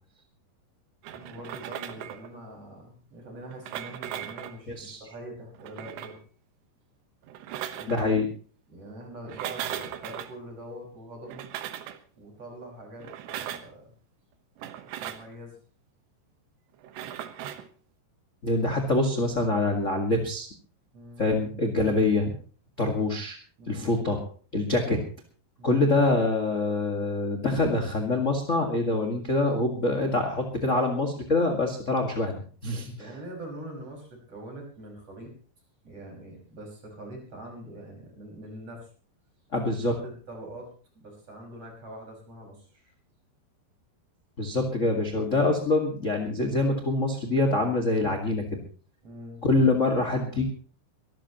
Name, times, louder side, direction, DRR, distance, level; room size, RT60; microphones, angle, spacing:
sound 1, 1.0-2.3 3.4-4.6 5.5-6.2 7.2-8.1 9.2-10.3 11.2-12.0 13.0-13.7 14.6-15.3 16.8-17.7, right 11 dB, 80° right, 3.4 m, -38 dB
voice 1, 1.1-6.2 7.7-8.0 8.7-11.5 12.1-13.9 15.0-15.6 20.9-21.3 23.6-23.9 25.6-25.8 33.0-35.3 35.8-38.9 39.9-42.9 49.0-49.4, right 1 dB, 35° right, 1 dB, 6.5 m, -43 dB
voice 2, 4.7-5.0 7.9-8.3 18.4-20.5 21.2-22.3 22.8-23.4 23.7-24.2 24.5-25.0 25.6-33.1 39.5-39.9 44.4-48.6 49.4-50.4, left 2 dB, 40° left, 4 dB, 1.1 m, -25 dB
24.0 x 14.0 x 3.0 m, 0.40 s
omnidirectional pair, 4.9 m